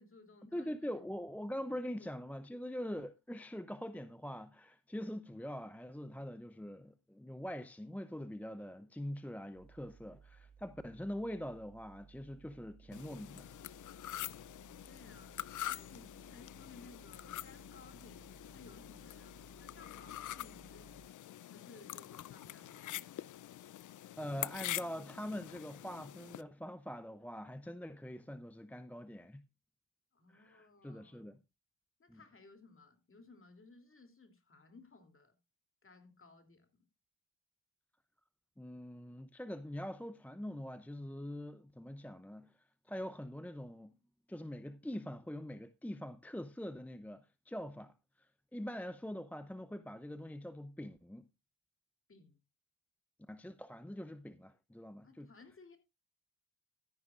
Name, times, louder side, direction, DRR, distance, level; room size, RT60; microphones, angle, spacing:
voice 1, 0.0-0.7 1.6-2.2 14.6-21.1 21.5-23.4 30.1-31.3 32.0-35.3 35.8-36.9 49.2-49.3 52.1-52.4 55.0-55.8, left 3 dB, 35° left, 3.1 m, -60 dB
voice 2, 0.5-13.5 24.2-29.4 30.3-31.4 32.1-32.2 38.6-42.6 42.8-44.0 44.3-51.3 53.3-55.3, equal, 5° left, 0.7 m, -44 dB
sound 1, 9.5-21.1, right 6 dB, 45° right, 1.8 m, -61 dB
sound 2, 12.9-26.4, left 13 dB, 55° left, 0.5 m, -45 dB
13.0 x 10.5 x 2.5 m
supercardioid pair, 55°, 36 cm